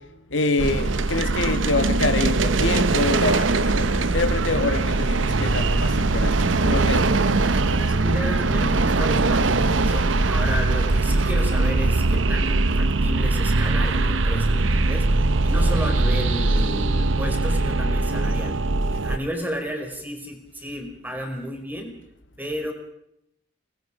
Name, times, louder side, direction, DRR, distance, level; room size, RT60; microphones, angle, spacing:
voice 1, 0.3-7.9, left 3 dB, 70° left, 8 dB, 1.8 m, -27 dB
sound 1, 0.6-19.2, right 2 dB, 75° right, 0.9 m, -21 dB
voice 2, 7.9-15.1 15.4-18.6 19.0-21.9 22.4-22.7, equal, 10° right, 3 dB, 4.5 m, -32 dB
28.0 x 20.0 x 5.0 m, 0.76 s
head